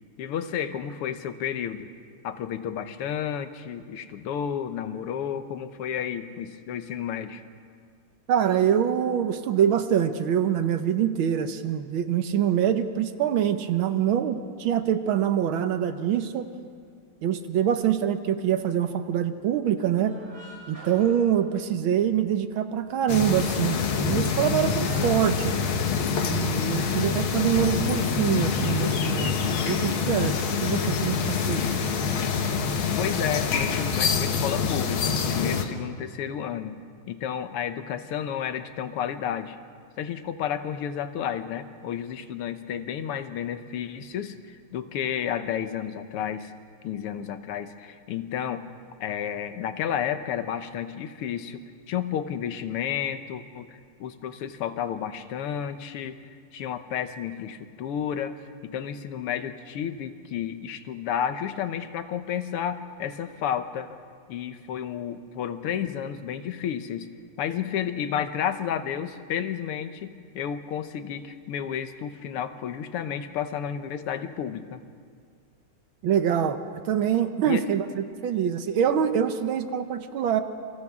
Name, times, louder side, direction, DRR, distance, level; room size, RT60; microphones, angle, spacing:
voice 1, 0.2-1.9 2.2-7.4 33.0-36.8 37.1-39.6 40.0-46.5 46.8-48.7 49.0-51.6 51.9-53.7 54.0-58.4 58.6-63.9 64.3-67.1 67.4-74.8 77.5-77.7, left 9 dB, 90° left, 10 dB, 1.9 m, -31 dB
voice 2, 8.3-16.5 17.2-20.1 20.7-25.6 26.3-31.2 31.5-31.7 76.0-76.6 76.9-80.4, right 9 dB, 70° right, 9 dB, 1.6 m, -25 dB
sound 1, 20.0-22.1 22.4-22.5 22.9-26.1, equal, 35° right, 6.4 m, -47 dB
sound 2, 23.1-35.7, left 6 dB, 70° left, 2.0 m, -26 dB
29.0 x 25.0 x 3.6 m, 2.1 s
omnidirectional pair, 2.4 m